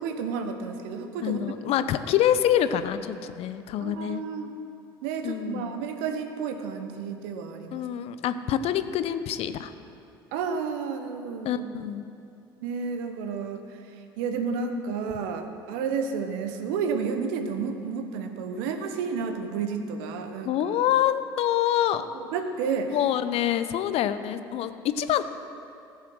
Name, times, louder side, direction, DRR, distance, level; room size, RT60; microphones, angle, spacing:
voice 1, 0.0-1.4 3.8-4.5 5.0-7.9 10.3-11.7 12.6-13.8 14.2-20.5 22.1-23.0, right 5 dB, 70° right, 6 dB, 1.1 m, -31 dB
voice 2, 1.2-4.2 5.2-5.8 7.7-9.7 11.4-12.0 20.4-22.0 22.9-25.2, left 11 dB, 55° left, 12 dB, 0.7 m, -26 dB
15.5 x 7.4 x 6.3 m, 2.6 s
hypercardioid pair, 65°, 12 cm